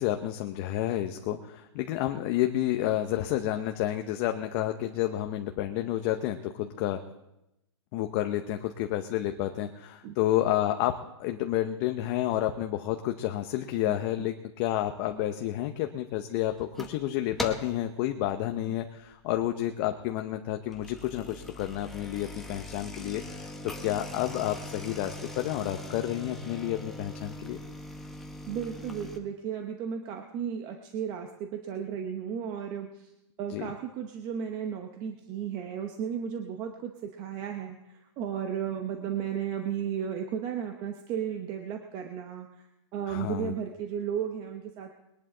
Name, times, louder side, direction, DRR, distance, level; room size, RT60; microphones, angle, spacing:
voice 1, 0.0-7.0 7.9-10.9 11.2-27.6 33.5-33.7 43.1-43.5, left 13 dB, 30° left, 6 dB, 0.7 m, -30 dB
voice 2, 13.9-14.3 16.8-16.9 18.7-18.8 28.5-33.1 33.4-42.7 42.9-44.9, right 8 dB, 25° right, 4 dB, 1.0 m, -34 dB
sound 1, 16.6-17.0 17.4-17.8 18.3-18.6 19.1-19.2 19.5-19.6 20.6-29.2, left 1 dB, ahead, 1.0 m, -41 dB
21.5 x 11.0 x 3.8 m, 0.89 s
hypercardioid pair, 155°, 15 cm